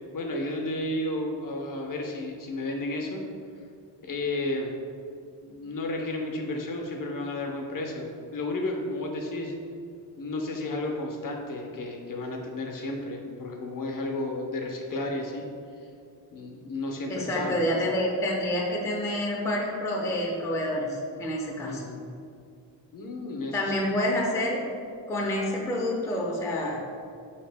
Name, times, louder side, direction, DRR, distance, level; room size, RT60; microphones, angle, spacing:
voice 1, 0.1-3.2 4.0-4.7 5.4-9.5 10.2-15.5 16.3-17.7 21.7-22.1 22.9-23.8, left 2 dB, 50° left, 1 dB, 0.6 m, -32 dB
voice 2, 17.1-21.8 23.5-24.6 25.1-26.8, left 1 dB, 5° left, -2 dB, 0.4 m, -28 dB
4.1 x 2.9 x 3.3 m, 2.4 s
cardioid pair, 100°, 44 cm